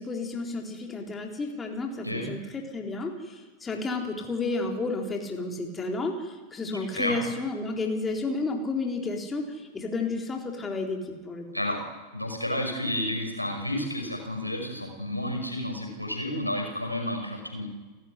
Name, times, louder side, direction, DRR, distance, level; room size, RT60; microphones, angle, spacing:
voice 1, 0.0-11.5, left 3 dB, 15° left, 1 dB, 3.9 m, -31 dB
voice 2, 12.1-17.7, left 1 dB, 90° left, 3 dB, 5.7 m, -31 dB
29.5 x 14.5 x 9.8 m, 1.2 s
figure-of-eight pair, 90°, 0 cm